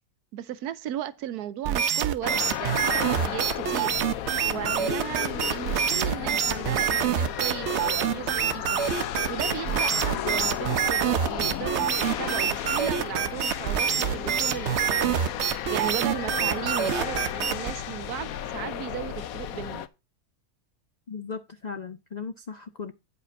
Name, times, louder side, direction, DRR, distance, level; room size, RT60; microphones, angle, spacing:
voice 1, 0.3-4.0 4.5-8.8 9.3-15.1 15.7-19.9, right 11 dB, 85° right, 1.2 m, -36 dB
sound 1, 1.6-17.7, right 9 dB, 60° right, 0.8 m, -26 dB
sound 2, 2.2-19.9, left 11 dB, 70° left, 1.1 m, -34 dB
voice 2, 21.1-22.9, left 5 dB, 90° left, 0.3 m, -37 dB
9.4 x 5.0 x 5.2 m
omnidirectional pair, 1.6 m